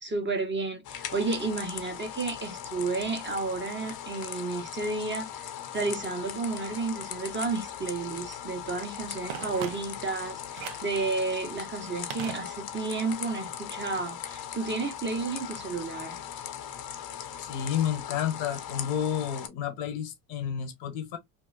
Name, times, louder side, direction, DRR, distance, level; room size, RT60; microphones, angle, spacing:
voice 1, 0.0-16.2, right 3 dB, 25° right, 1.1 m, -32 dB
sound 1, 0.8-19.5, left 9 dB, 50° left, 0.8 m, -39 dB
Telephone, 9.3-10.2 10.6-11.0 12.1-13.0 13.2-13.3, right 10 dB, 70° right, 0.7 m, -40 dB
voice 2, 17.4-21.2, left 9 dB, 75° left, 1.1 m, -31 dB
2.8 x 2.4 x 2.4 m
supercardioid pair, 75°, 47 cm